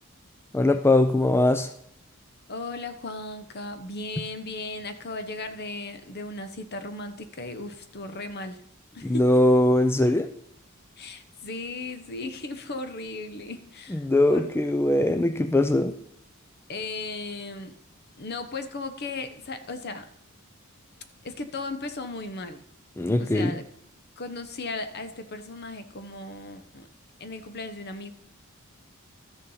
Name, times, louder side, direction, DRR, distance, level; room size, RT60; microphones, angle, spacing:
voice 1, 0.5-1.7 9.0-10.3 13.9-16.0 23.0-23.5, left 1 dB, 10° left, 9 dB, 0.4 m, -21 dB
voice 2, 2.5-8.6 8.9-9.2 11.0-14.5 16.7-17.7 18.2-20.1 21.2-22.6 23.2-23.7 24.2-26.9 27.2-28.1, left 2 dB, 50° left, 9 dB, 1.0 m, -36 dB
13.0 x 6.8 x 5.6 m, 0.74 s
head